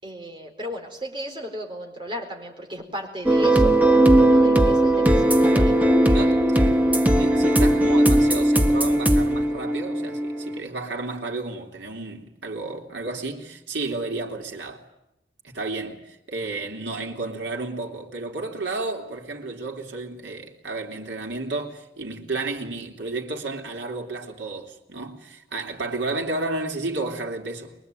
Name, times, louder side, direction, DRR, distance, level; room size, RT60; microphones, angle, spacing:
voice 1, 0.0-6.4 6.6-7.0, equal, 30° right, 4.3 m, -36 dB
sound 1, 3.2-10.6, right 1 dB, 10° right, 1.4 m, -18 dB
voice 2, 6.1-6.8 7.2-14.9 15.4-27.7, right 3 dB, 85° right, 3.4 m, -32 dB
24.0 x 22.5 x 9.2 m
head